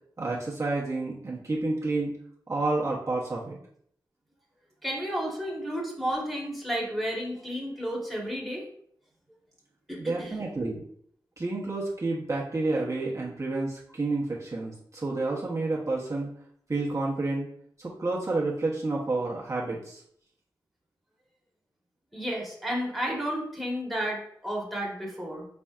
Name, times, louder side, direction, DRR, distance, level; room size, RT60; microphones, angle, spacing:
voice 1, 0.2-2.1 2.5-3.6 10.0-10.8 11.4-16.3 16.7-17.5 17.8-20.0, right 2 dB, 40° right, -5 dB, 1.0 m, -29 dB
voice 2, 4.8-8.6 9.9-10.3 22.1-25.5, equal, ahead, -3 dB, 1.3 m, -32 dB
4.3 x 4.1 x 2.4 m, 0.65 s
wide cardioid pair, 80°, 8 cm